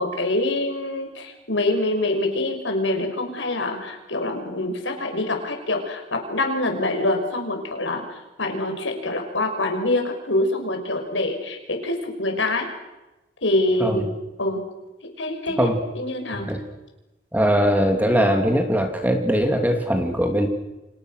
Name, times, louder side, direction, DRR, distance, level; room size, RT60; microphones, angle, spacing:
voice 1, 0.0-8.0 8.4-12.7 13.4-14.1 14.4-14.6 15.2-16.5, left 2 dB, 85° left, 4 dB, 5.8 m, -25 dB
voice 2, 16.3-16.6 17.3-20.5, equal, 10° right, 4 dB, 2.7 m, -21 dB
29.5 x 26.0 x 6.6 m, 1.0 s
head